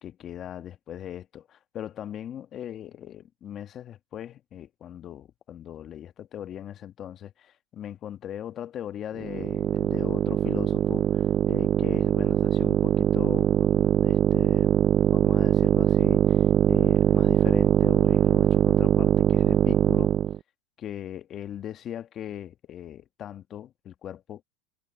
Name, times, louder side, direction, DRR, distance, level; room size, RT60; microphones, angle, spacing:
voice 1, 0.0-14.7 15.1-20.1 20.8-24.4, left 10 dB, 35° left, 1.4 m, -39 dB
sound 1, 9.2-20.4, right 10 dB, 35° right, 0.4 m, -22 dB
supercardioid pair, 110°, 0 cm